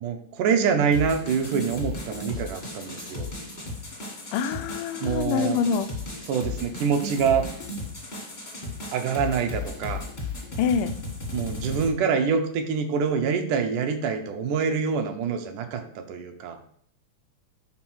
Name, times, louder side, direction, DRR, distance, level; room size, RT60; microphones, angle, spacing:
voice 1, 0.0-3.3 5.0-5.6 6.3-7.5 8.9-10.0 11.3-16.6, right 6 dB, 80° right, 5 dB, 2.3 m, -25 dB
sound 1, 0.9-11.9, left 2 dB, 40° left, 0.6 m, -35 dB
voice 2, 4.3-5.9 10.6-10.9, left 6 dB, 90° left, 11 dB, 2.1 m, -25 dB
5.9 x 3.9 x 6.1 m, 0.62 s
omnidirectional pair, 3.6 m